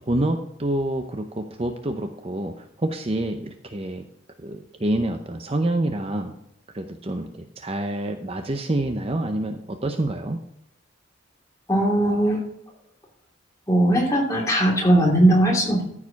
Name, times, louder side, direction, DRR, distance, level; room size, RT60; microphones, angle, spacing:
voice 1, 0.1-4.0 4.4-6.3 6.7-10.4, right 1 dB, 30° right, 6 dB, 0.6 m, -27 dB
voice 2, 11.7-12.4 13.7-15.9, right 1 dB, 15° left, -2 dB, 2.7 m, -19 dB
14.0 x 4.8 x 5.8 m, 0.77 s
head